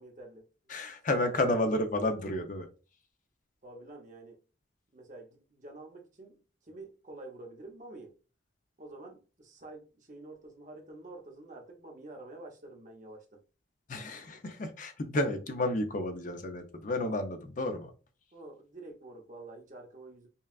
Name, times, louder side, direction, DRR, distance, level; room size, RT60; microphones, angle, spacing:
voice 1, 0.0-0.8 1.1-1.4 3.6-4.4 4.9-8.1 8.8-13.4 18.3-20.3, right 2 dB, 40° right, 0.9 m, -48 dB
voice 2, 0.7-2.7 13.9-17.9, left 1 dB, 40° left, 0.6 m, -31 dB
5.4 x 2.3 x 2.4 m
head